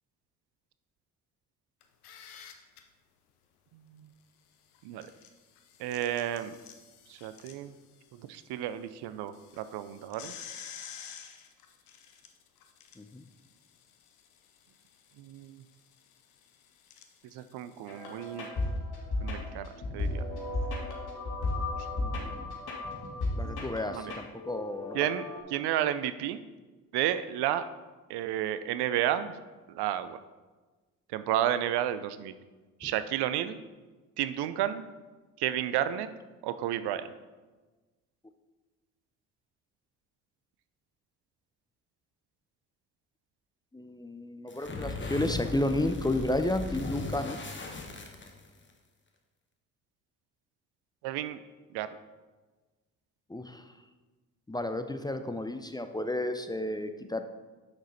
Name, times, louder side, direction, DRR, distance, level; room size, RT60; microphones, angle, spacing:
sound 1, 1.8-2.8 4.7-8.4 8.7-8.8 9.3-18.5, left 8 dB, 90° left, 0.7 m, -51 dB
voice 1, 5.8-6.6 7.1-7.7 8.3-10.3 15.2-15.5 17.3-18.5 19.2-20.2 22.0-22.3 23.4-24.1 24.9-25.3 25.5-26.4 26.9-27.6 28.1-29.3 29.7-30.2 31.1-32.3 32.8-33.6 34.2-34.8 35.4-36.1 36.4-37.1 51.0-51.4 51.7-51.9, right 11 dB, 65° right, 13 dB, 0.6 m, -31 dB
sound 2, 17.9-25.4, left 2 dB, 60° left, 2.3 m, -35 dB
voice 2, 22.0-22.5 23.4-25.0 32.8-32.9 43.7-47.4 53.3-53.6 54.5-57.2, left 1 dB, 10° left, 8 dB, 0.6 m, -32 dB
sound 3, 44.5-48.7, left 3 dB, 25° left, 1.3 m, -37 dB
7.9 x 6.2 x 4.1 m, 1.3 s
hypercardioid pair, 45°, 43 cm